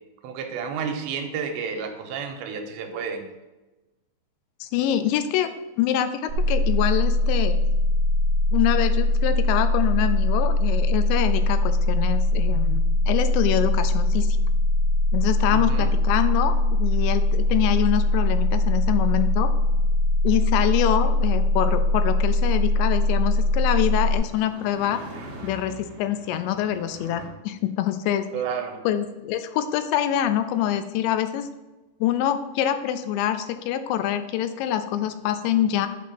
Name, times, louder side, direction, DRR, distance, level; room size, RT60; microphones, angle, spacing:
voice 1, 0.2-3.3 15.5-15.9 28.3-28.8, right 6 dB, 85° right, 4 dB, 2.9 m, -31 dB
voice 2, 4.6-5.5 5.8-7.5 8.5-14.4 15.1-19.5 20.2-25.0 25.4-28.3 28.8-31.5 32.0-35.9, left 11 dB, 85° left, 10 dB, 2.8 m, -25 dB
sound 1, 6.3-24.2, left 2 dB, 5° right, 0.4 m, -21 dB
sound 2, 18.8-27.3, right 2 dB, 65° right, 2.2 m, -45 dB
8.3 x 4.4 x 5.8 m, 1.1 s
omnidirectional pair, 5.2 m